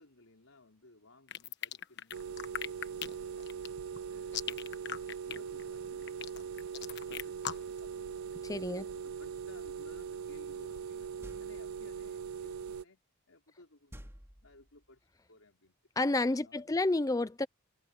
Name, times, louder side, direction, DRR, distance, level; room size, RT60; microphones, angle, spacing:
voice 1, 0.0-3.6 4.0-8.4 8.7-11.1 11.4-13.0 13.3-14.1 14.4-15.8 16.4-16.9, left 2 dB, 75° left, 4.2 m, -59 dB
sound 1, 1.3-7.8, left 9 dB, 50° left, 1.3 m, -39 dB
sound 2, 2.1-12.8, right 7 dB, 75° right, 0.5 m, -41 dB
voice 2, 8.5-8.8 16.0-17.5, left 2 dB, 15° left, 0.4 m, -30 dB
sound 3, 11.2-11.9 13.9-14.9, equal, 10° right, 3.2 m, -51 dB
head